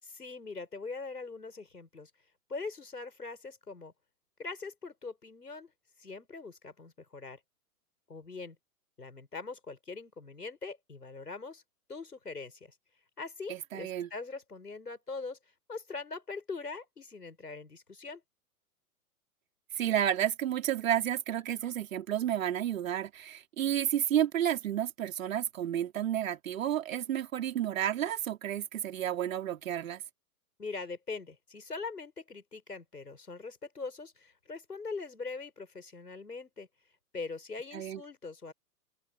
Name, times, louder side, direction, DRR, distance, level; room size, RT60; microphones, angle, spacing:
voice 1, 0.0-2.1 2.5-3.9 4.4-5.7 6.0-7.4 8.1-8.6 9.0-11.6 11.9-12.7 13.2-15.4 15.7-18.2 30.6-36.7 37.1-38.5, left 4 dB, 80° left, 6.7 m, -42 dB
voice 2, 13.5-14.1 19.8-30.0 37.7-38.0, right 11 dB, 55° right, 3.7 m, -31 dB
open air
figure-of-eight pair, 110°, 46 cm